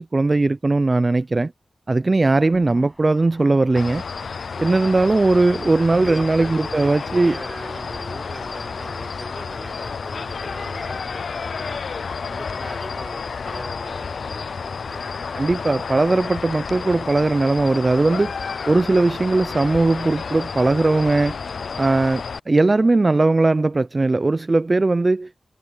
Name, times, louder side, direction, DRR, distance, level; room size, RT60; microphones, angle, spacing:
voice 1, 0.0-1.5 1.9-4.0 4.6-7.4 15.4-18.3 18.7-21.4 21.8-25.3, right 2 dB, 40° right, 0.5 m, -19 dB
sound 1, 2.4-9.2, equal, 5° right, 7.1 m, -50 dB
sound 2, 3.7-22.4, left 5 dB, 80° left, 0.3 m, -31 dB
voice 2, 5.9-11.8 12.3-15.2, right 1 dB, 25° right, 4.8 m, -39 dB
cardioid pair, 45°, 0 cm